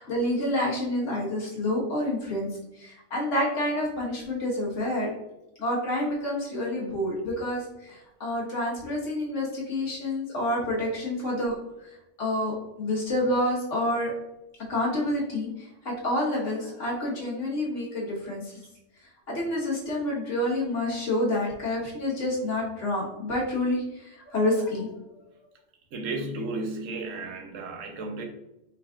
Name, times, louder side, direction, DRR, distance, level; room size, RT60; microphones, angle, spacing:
voice 1, 0.0-2.5 2.7-5.1 5.6-11.5 12.2-14.1 14.7-18.6 19.3-24.9, left 1 dB, 70° left, -4 dB, 1.7 m, -28 dB
voice 2, 25.9-28.3, right 2 dB, 80° right, 4 dB, 1.1 m, -33 dB
4.7 x 4.0 x 2.4 m, 0.91 s
omnidirectional pair, 1.3 m